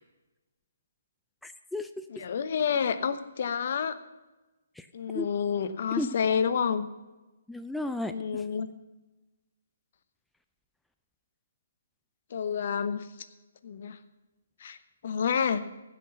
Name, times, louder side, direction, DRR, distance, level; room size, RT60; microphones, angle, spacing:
voice 1, 1.4-2.2 4.8-4.9 5.1-5.3 6.0-6.1 7.5-8.4, left 2 dB, 5° left, 8 dB, 0.3 m, -34 dB
voice 2, 2.2-4.0 4.9-6.9 8.0-8.7 12.3-13.1 13.6-14.0 14.6-14.8 15.0-15.6, left 7 dB, 55° left, 12 dB, 0.8 m, -29 dB
15.5 x 5.9 x 6.5 m, 1.1 s
hypercardioid pair, 140°, 0 cm